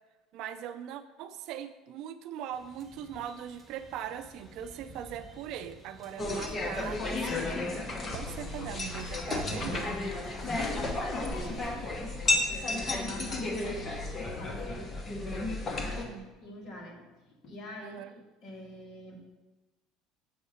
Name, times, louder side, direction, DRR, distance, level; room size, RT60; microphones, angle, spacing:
voice 1, 0.3-9.9 15.9-16.2 17.8-18.1, right 9 dB, 60° right, 10 dB, 0.5 m, -41 dB
sound 1, 2.5-11.9, right 1 dB, 5° right, 1.3 m, -51 dB
sound 2, 6.2-16.1, left 2 dB, 25° left, 1.0 m, -33 dB
voice 2, 10.5-13.9 14.4-14.9 15.6-16.1 16.4-19.3, left 1 dB, 40° left, -1 dB, 2.0 m, -45 dB
7.9 x 4.6 x 5.7 m, 1.1 s
cardioid pair, 130°, 0 cm